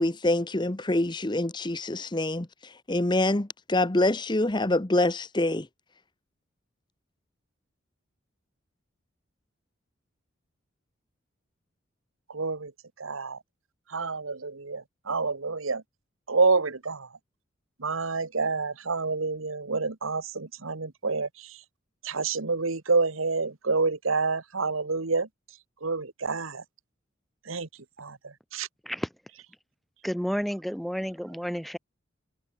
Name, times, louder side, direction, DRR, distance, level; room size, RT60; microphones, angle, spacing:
voice 1, 0.0-5.7, left 1 dB, 20° left, 0.9 m, -26 dB
voice 2, 12.3-12.7 13.0-13.4 13.9-15.8 16.3-17.1 17.8-21.3 22.0-25.3 25.8-26.6 27.5-27.7 28.0-28.2 28.5-28.7, right 4 dB, 90° right, 1.5 m, -28 dB
voice 3, 30.0-31.8, equal, ahead, 3.8 m, -31 dB
head